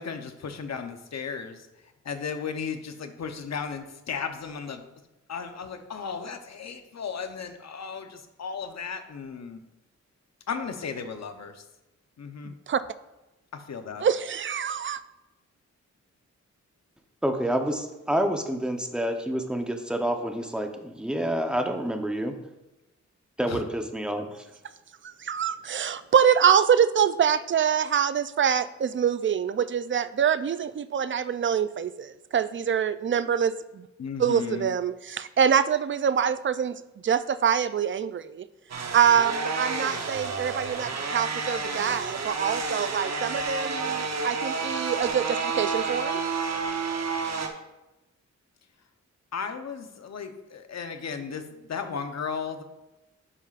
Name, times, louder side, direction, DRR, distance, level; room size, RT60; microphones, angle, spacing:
voice 1, 0.0-1.7 2.0-4.8 5.3-9.6 10.5-11.6 12.2-12.5 13.5-14.1 23.5-23.6 34.0-34.7 49.3-52.6, left 6 dB, 60° left, 7 dB, 0.8 m, -35 dB
voice 2, 12.5-12.8 14.0-15.0 25.0-33.9 34.2-38.5 38.9-46.2, right 8 dB, 40° right, 14 dB, 0.4 m, -25 dB
voice 3, 17.2-22.3 23.4-24.3, right 1 dB, 5° right, 5 dB, 0.8 m, -28 dB
sound 1, 38.7-47.5, right 4 dB, 60° right, 0.9 m, -30 dB
9.8 x 5.5 x 2.5 m, 1.0 s
cardioid pair, 75°, 30 cm